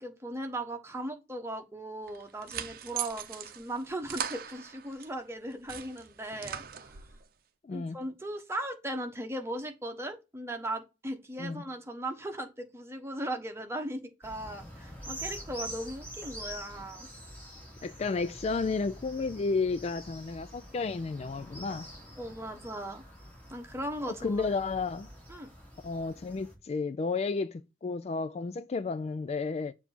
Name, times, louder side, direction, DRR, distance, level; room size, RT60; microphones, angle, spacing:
voice 1, 0.0-6.9 7.7-17.1 22.2-23.0 23.5-24.5 25.3-25.5, right 1 dB, 15° right, 1.2 m, -38 dB
sound 1, 2.1-5.1 5.5-7.2, right 9 dB, 55° right, 0.7 m, -40 dB
voice 2, 7.6-8.0 11.4-11.6 17.8-21.9 24.1-25.1 25.8-29.7, left 4 dB, 35° left, 0.3 m, -32 dB
sound 2, 14.2-26.5, equal, 10° left, 2.5 m, -46 dB
7.2 x 2.9 x 5.9 m
head